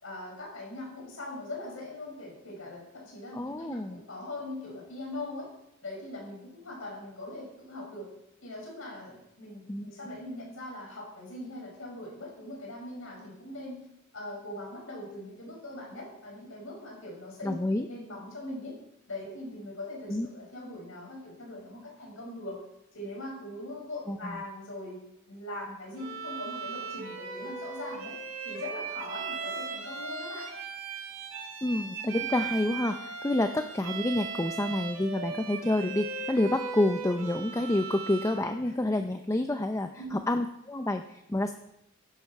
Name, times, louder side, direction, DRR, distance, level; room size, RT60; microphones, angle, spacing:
voice 1, 0.0-5.5 5.8-8.1 8.4-13.9 14.1-17.5 17.9-18.8 19.1-22.6 22.9-25.0 25.3-28.1 28.4-30.5 38.7-38.8 40.0-40.2, left 1 dB, 75° left, -1 dB, 6.0 m, -41 dB
voice 2, 3.3-4.0 9.7-9.9 17.4-17.9 20.1-20.3 24.1-24.4 31.6-41.5, left 1 dB, 15° left, 7 dB, 0.5 m, -28 dB
Bowed string instrument, 26.0-38.5, right 5 dB, 80° right, 2.4 m, -38 dB
15.0 x 10.5 x 4.5 m, 0.82 s
head